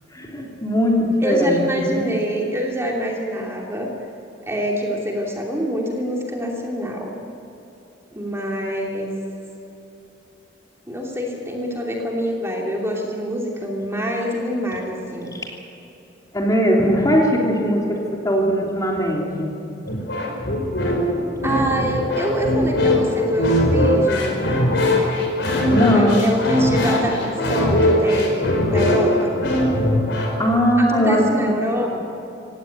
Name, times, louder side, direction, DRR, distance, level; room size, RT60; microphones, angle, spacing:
voice 1, 0.1-2.0 15.3-15.4 16.3-19.5 25.7-26.3 30.1-31.5 31.9-32.0, equal, 20° left, -1 dB, 3.1 m, -20 dB
voice 2, 1.2-3.9 4.4-7.1 8.1-9.1 10.9-15.3 21.4-24.4 25.9-28.4 28.7-29.3 30.8-32.0, equal, 15° right, -1 dB, 2.8 m, -25 dB
sound 1, 19.9-30.4, left 1 dB, 70° left, 4.9 m, -20 dB
18.0 x 17.5 x 9.3 m, 2.9 s
head